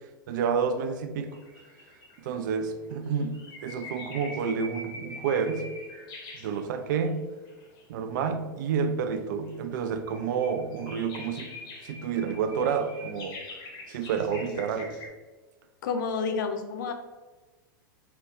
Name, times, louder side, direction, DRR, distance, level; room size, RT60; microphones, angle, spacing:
voice 1, 0.3-1.4 2.2-5.7 6.4-7.2 7.9-11.5 11.8-13.4 13.9-14.9, right 6 dB, 60° right, 7 dB, 0.5 m, -29 dB
sound 1, 1.3-2.3 2.9-7.1 7.4-8.1 8.9-15.1, left 2 dB, 40° left, 1.1 m, -44 dB
voice 2, 15.8-16.9, left 5 dB, 65° left, 6 dB, 0.5 m, -29 dB
3.9 x 2.3 x 3.7 m, 1.3 s
hypercardioid pair, 100°, 11 cm